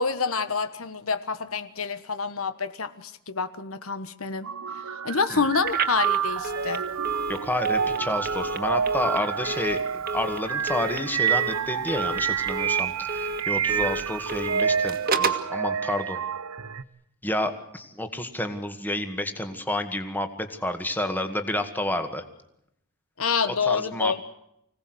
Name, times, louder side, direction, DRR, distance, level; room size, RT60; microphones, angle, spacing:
voice 1, 0.0-4.5 5.0-6.8 23.2-24.2, left 5 dB, 70° left, 11 dB, 1.4 m, -27 dB
sound 1, 4.4-16.8, right 7 dB, 80° right, 0.9 m, -28 dB
Telephone, 5.6-15.5, right 2 dB, 45° right, 1.9 m, -33 dB
voice 2, 7.3-9.8 10.1-16.2 17.2-22.2 23.5-24.2, left 1 dB, 10° left, 7 dB, 1.9 m, -30 dB
25.5 x 18.0 x 8.0 m, 0.78 s
head